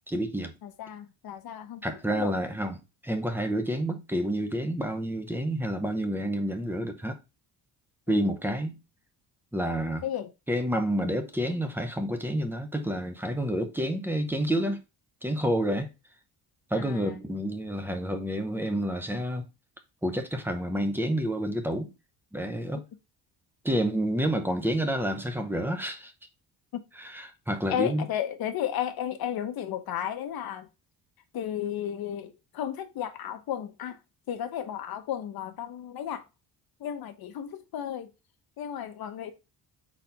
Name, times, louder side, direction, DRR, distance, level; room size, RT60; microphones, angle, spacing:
voice 1, 0.1-0.5 1.8-2.8 3.0-7.2 8.1-8.8 9.5-10.0 10.5-14.8 15.2-15.9 16.7-19.4 20.0-21.9 22.3-22.8 23.6-26.1 27.0-28.0, right 1 dB, 5° right, 0.8 m, -29 dB
voice 2, 0.6-2.4 8.1-8.3 10.0-10.3 16.8-17.2 27.7-30.7 31.3-34.0 34.3-36.2 36.8-38.1 38.6-39.3, left 10 dB, 65° left, 1.0 m, -33 dB
4.3 x 4.0 x 5.6 m
cardioid pair, 145°, 40 cm